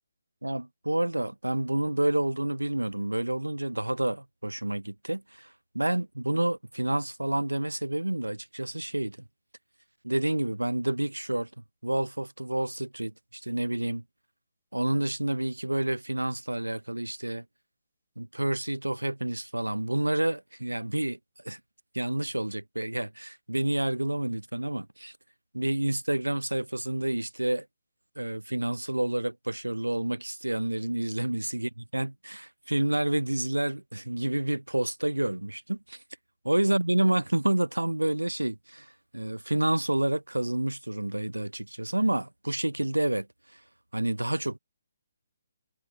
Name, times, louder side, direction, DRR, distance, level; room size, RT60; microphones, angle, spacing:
voice 1, 0.4-9.2 10.0-11.5 11.8-14.0 14.7-17.4 18.2-21.2 21.4-21.6 21.9-25.1 25.5-27.7 28.2-36.0 36.4-43.3 43.5-43.6 43.9-44.6, right 1 dB, 90° right, 0.5 m, -29 dB
figure-of-eight pair, 140°, 0 cm